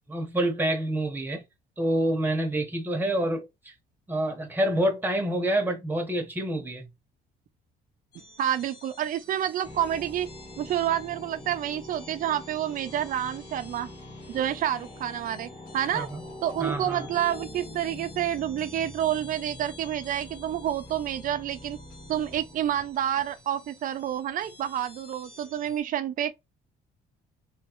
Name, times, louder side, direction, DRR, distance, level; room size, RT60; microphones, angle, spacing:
voice 1, 0.1-1.4 1.8-3.7 4.1-6.9 15.9-16.2 16.6-17.1, right 1 dB, 10° right, 1.3 m, -27 dB
sound 1, 8.1-25.8, left 3 dB, 70° left, 1.8 m, -52 dB
voice 2, 8.4-10.3 10.6-13.9 14.3-16.1 16.4-21.8 22.1-26.3, right 11 dB, 55° right, 0.6 m, -29 dB
sound 2, 9.6-23.7, left 1 dB, 40° left, 1.6 m, -44 dB
3.2 x 3.2 x 3.0 m
cardioid pair, 110°, 17 cm